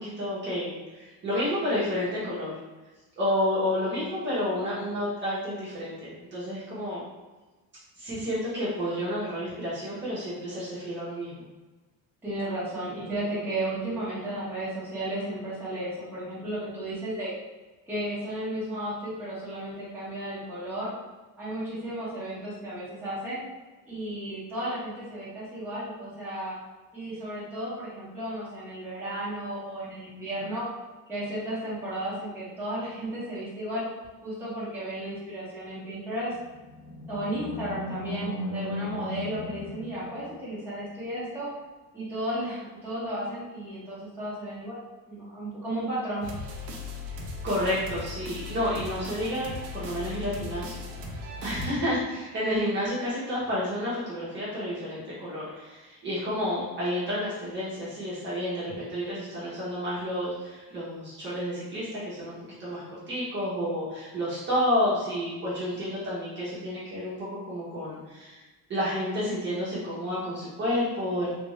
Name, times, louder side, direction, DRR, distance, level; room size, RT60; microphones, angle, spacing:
voice 1, 0.0-2.5 3.2-7.0 8.0-11.4 47.4-50.8 51.4-68.4 68.7-71.3, left 1 dB, 30° right, -10 dB, 1.1 m, -30 dB
voice 2, 12.2-17.3 17.9-20.9 21.4-23.4 23.9-26.6 26.9-30.7 31.1-33.8 34.2-36.3 37.1-41.5 41.9-44.8 45.1-46.3, right 1 dB, 5° right, -11 dB, 1.2 m, -34 dB
Animal, 36.2-40.8, left 1 dB, 80° left, 0.8 m, -37 dB
sound 1, 46.2-51.7, left 3 dB, 65° right, 0.8 m, -38 dB
3.5 x 2.5 x 3.2 m, 1.2 s
cardioid pair, 170°, 38 cm